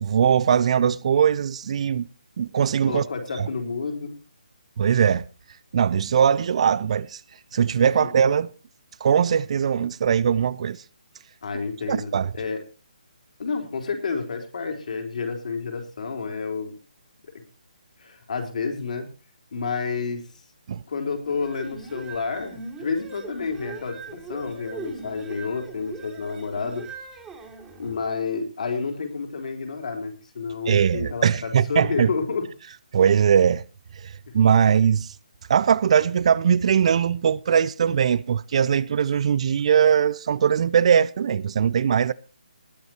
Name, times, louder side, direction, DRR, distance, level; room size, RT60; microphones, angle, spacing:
voice 1, 0.0-2.1 2.4-3.0 3.4-3.5 4.8-5.2 5.7-7.2 7.5-8.5 9.0-10.8 11.9-12.3 20.7-20.8 30.7-32.1 32.9-33.6 34.0-35.1 35.5-42.1, right 8 dB, 45° right, 0.5 m, -20 dB
voice 2, 2.9-4.1 8.0-8.1 11.4-12.6 13.4-16.7 18.0-19.1 19.5-20.2 20.9-26.8 27.8-32.4, left 4 dB, 55° left, 4.0 m, -30 dB
sound 1, 21.3-28.1, right 4 dB, 10° right, 2.8 m, -40 dB
20.0 x 8.1 x 4.5 m
figure-of-eight pair, 145°, 5 cm